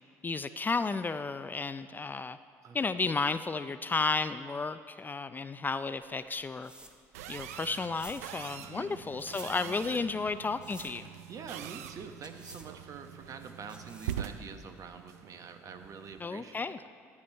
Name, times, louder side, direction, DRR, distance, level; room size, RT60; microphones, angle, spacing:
voice 1, 0.2-2.4 2.7-6.7 7.3-11.1 16.2-16.8, left 4 dB, 25° left, 12 dB, 0.4 m, -33 dB
sound 1, 6.0-14.4, right 1 dB, 10° right, 1.2 m, -53 dB
sound 2, 7.1-16.3, right 10 dB, 80° right, 0.5 m, -44 dB
voice 2, 8.7-9.0 9.4-10.2 11.3-16.7, right 5 dB, 45° right, 7 dB, 1.1 m, -46 dB
14.0 x 9.6 x 4.4 m, 2.1 s
hypercardioid pair, 60°, 8 cm